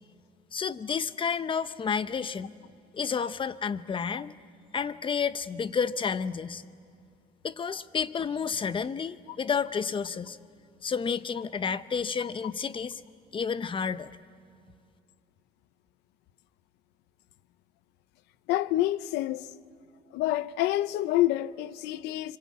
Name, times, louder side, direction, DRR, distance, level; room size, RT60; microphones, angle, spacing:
voice 1, 0.5-2.5 2.9-4.4 4.7-6.6 7.4-10.4 10.8-13.0 13.3-14.1, left 6 dB, 30° left, 0.8 m, -30 dB
voice 2, 18.5-19.5 20.1-22.4, left 15 dB, 90° left, 0.7 m, -27 dB
26.0 x 25.0 x 8.6 m
cardioid pair, 110°, 17 cm